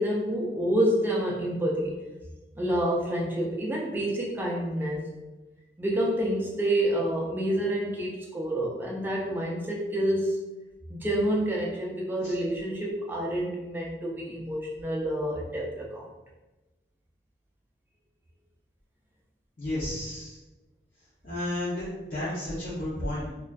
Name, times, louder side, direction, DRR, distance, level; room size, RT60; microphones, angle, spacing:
voice 1, 0.0-2.0 2.6-5.1 5.8-10.4 10.9-16.1, right 1 dB, 10° right, -3 dB, 0.3 m, -28 dB
voice 2, 19.6-20.4 21.2-23.3, left 1 dB, 45° left, -11 dB, 0.6 m, -32 dB
2.4 x 2.3 x 2.2 m, 1.1 s
head